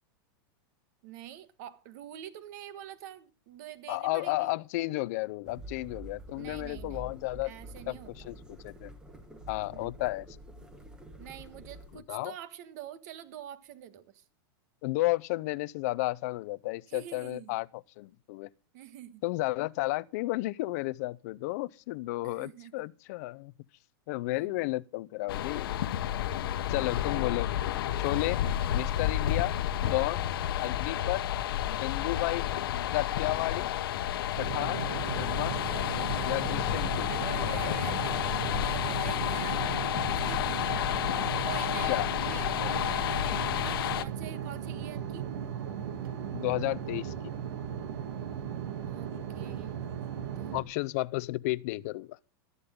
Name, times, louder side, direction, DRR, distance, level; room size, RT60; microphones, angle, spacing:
voice 1, 1.0-4.5 6.3-7.1 7.4-8.3 9.7-9.9 11.2-14.2 16.9-17.6 18.7-19.2 22.2-22.9 24.3-24.6 37.1-38.1 38.5-39.6 40.1-40.4 41.4-45.2 48.9-49.1 49.3-49.9 50.3-50.7, right 11 dB, 45° right, 1.4 m, -46 dB
voice 2, 3.9-7.5 7.9-8.9 9.5-10.3 11.9-12.3 14.8-18.5 19.2-23.5 24.1-25.8 26.7-27.5 27.9-28.4 28.7-29.5 29.8-30.3 30.6-31.2 31.7-32.5 32.9-33.7 34.4-34.9 35.1-35.9 36.2-37.1 37.4-37.8 41.9-42.1 46.3-47.3 50.5-52.2, left 20 dB, 40° left, 0.5 m, -32 dB
sound 1, 5.4-12.0, right 1 dB, 5° right, 1.2 m, -47 dB
sound 2, 25.3-44.0, left 11 dB, 70° left, 1.1 m, -31 dB
sound 3, 34.4-50.6, right 8 dB, 80° right, 2.5 m, -37 dB
15.0 x 12.5 x 3.6 m
supercardioid pair, 175°, 12 cm